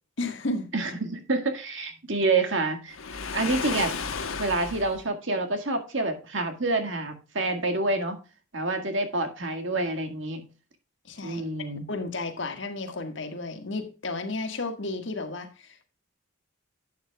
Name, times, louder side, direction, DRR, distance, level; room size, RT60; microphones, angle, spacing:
voice 1, 0.2-0.7 11.0-11.4 11.9-15.7, left 2 dB, 60° left, 6 dB, 1.6 m, -32 dB
voice 2, 0.7-3.0 3.3-3.9 4.4-8.2 8.5-10.4 11.2-11.9, right 2 dB, 60° right, 5 dB, 1.9 m, -27 dB
Waves surf, 2.9-5.0, left 5 dB, 80° left, 1.2 m, -33 dB
11.5 x 8.6 x 2.3 m, 0.32 s
head